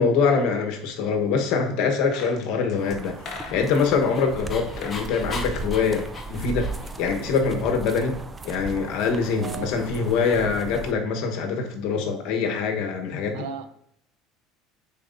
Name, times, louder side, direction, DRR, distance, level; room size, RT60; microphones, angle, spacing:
voice 1, 0.0-6.7 7.0-8.2 8.4-13.4, left 5 dB, 65° left, 3 dB, 1.1 m, -24 dB
sound 1, 1.9-3.9 4.6-5.0 5.3-6.7 7.0-7.1, left 4 dB, 40° left, 1.1 m, -41 dB
sound 2, 2.8-10.9, right 2 dB, 15° right, 0.4 m, -36 dB
Dog, 3.3-7.1, left 3 dB, 25° left, 0.9 m, -39 dB
voice 2, 9.4-9.7 13.3-13.7, right 7 dB, 75° right, 10 dB, 0.6 m, -35 dB
9.4 x 4.1 x 2.6 m, 0.75 s
cardioid pair, 150°, 0 cm